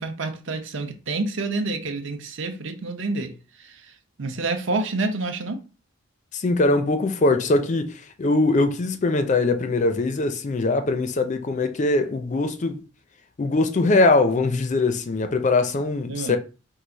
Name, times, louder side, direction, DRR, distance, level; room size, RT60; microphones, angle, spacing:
voice 1, 0.0-5.6 16.1-16.4, right 3 dB, 60° right, 0.7 m, -28 dB
voice 2, 6.3-12.8 13.4-16.4, left 2 dB, 35° left, 0.4 m, -22 dB
4.7 x 2.4 x 3.9 m
head